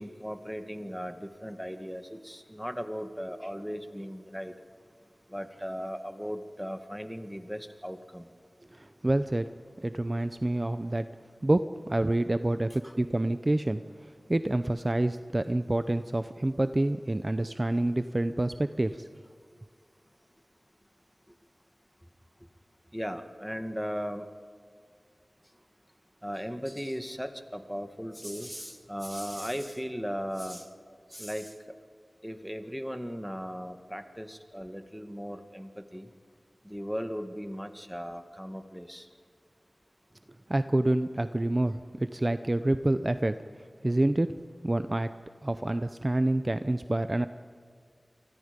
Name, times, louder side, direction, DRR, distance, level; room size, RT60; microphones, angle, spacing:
voice 1, 0.0-4.5 5.3-8.3 12.8-12.9 22.9-24.3 26.2-30.6 31.1-31.5 32.2-36.1 36.7-39.0, equal, ahead, 7 dB, 1.8 m, -37 dB
voice 2, 8.7-9.5 9.8-11.1 11.4-19.1 40.5-43.4 43.8-44.3 44.6-45.1 45.4-47.3, right 1 dB, 35° right, 10 dB, 0.7 m, -27 dB
29.5 x 24.0 x 5.3 m, 2.1 s
wide cardioid pair, 50°, 0 cm